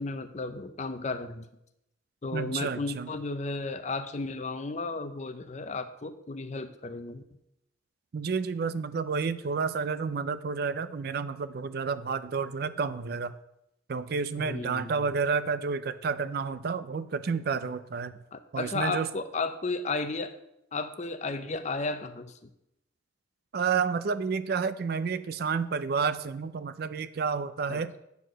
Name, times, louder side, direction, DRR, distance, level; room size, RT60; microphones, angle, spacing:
voice 1, 0.0-1.5 2.2-7.2 14.4-15.1 18.3-20.3 20.7-22.5 27.7-28.0, left 3 dB, 40° left, 10 dB, 0.6 m, -34 dB
voice 2, 2.3-3.1 8.1-13.3 13.9-18.2 18.5-19.1 23.5-27.9, right 5 dB, 55° right, 14 dB, 0.4 m, -30 dB
8.2 x 4.6 x 6.1 m, 0.83 s
head